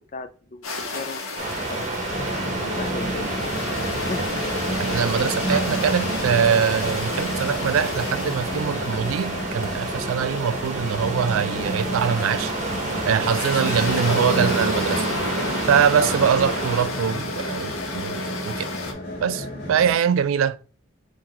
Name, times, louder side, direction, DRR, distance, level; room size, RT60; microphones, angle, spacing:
voice 1, 0.1-1.9 2.6-4.3 13.6-14.0 16.3-16.8 19.8-20.1, left 3 dB, 35° left, 0.4 m, -37 dB
sound 1, 0.6-18.9, left 2 dB, 85° left, 1.0 m, -32 dB
sound 2, 1.4-16.8, right 2 dB, 35° right, 0.8 m, -29 dB
sound 3, 2.1-19.9, equal, 50° left, 1.1 m, -31 dB
voice 2, 4.8-12.5 13.0-15.0 15.7-18.7 19.2-20.6, right 7 dB, 80° right, 0.3 m, -23 dB
4.3 x 2.7 x 3.8 m
head